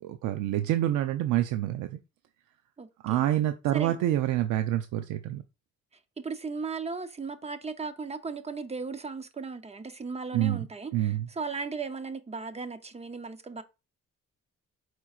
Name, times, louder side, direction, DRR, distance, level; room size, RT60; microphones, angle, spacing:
voice 1, 0.0-2.0 3.0-5.4 10.3-10.6 10.9-11.3, right 13 dB, 90° right, 0.5 m, -27 dB
voice 2, 2.8-3.2 3.7-4.0 6.2-13.6, right 4 dB, 20° right, 0.6 m, -36 dB
4.6 x 4.5 x 2.4 m
cardioid pair, 90°, 30 cm